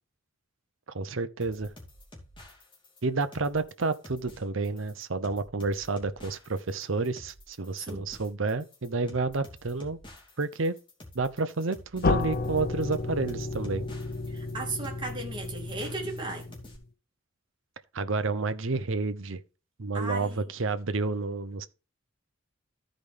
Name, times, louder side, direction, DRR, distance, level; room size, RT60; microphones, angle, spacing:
voice 1, 0.9-1.7 3.0-10.0 10.4-10.7 11.1-13.8 17.9-19.4 19.8-21.7, right 3 dB, 70° right, 0.8 m, -30 dB
sound 1, 1.4-16.8, left 1 dB, 25° left, 2.7 m, -50 dB
sound 2, 12.0-16.8, left 3 dB, 50° left, 0.8 m, -32 dB
voice 2, 14.3-16.6 19.9-20.4, right 2 dB, 25° right, 2.4 m, -36 dB
14.5 x 5.1 x 3.4 m
head